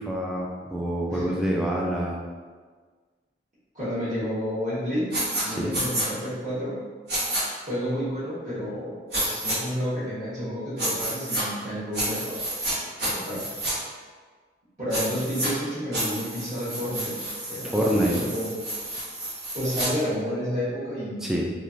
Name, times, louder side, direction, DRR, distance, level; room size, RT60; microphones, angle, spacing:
voice 1, 0.0-2.2 5.5-5.7 17.7-18.2 21.2-21.5, equal, 5° right, -3 dB, 0.3 m, -26 dB
voice 2, 3.7-5.1 5.4-6.8 7.7-12.4 13.0-13.4 14.8-17.2 17.5-18.5 19.5-21.3, equal, 40° right, -13 dB, 1.1 m, -30 dB
sound 1, 5.1-5.4 5.7-6.1 7.1-7.4 9.1-9.6 10.8-11.4 11.9-12.7 13.0-13.7 14.9-15.5 15.9-19.9, right 1 dB, 75° right, 1.3 m, -30 dB
3.0 x 2.4 x 2.5 m, 1.5 s
head